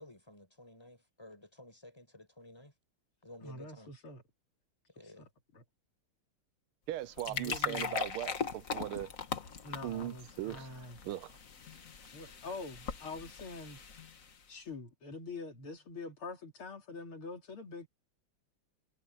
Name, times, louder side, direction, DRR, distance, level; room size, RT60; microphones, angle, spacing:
voice 1, 0.0-2.7 3.2-3.9 5.0-5.3, left 1 dB, 10° left, 6.1 m, -53 dB
voice 2, 3.4-4.2 5.0-5.6 7.2-8.0 9.6-11.0 12.1-13.8 14.5-17.9, left 3 dB, 80° left, 3.8 m, -45 dB
sound 1, 6.9-14.5, left 6 dB, 45° left, 1.6 m, -40 dB
voice 3, 6.9-9.1 9.8-11.3, right 14 dB, 80° right, 1.5 m, -39 dB
omnidirectional pair, 2.3 m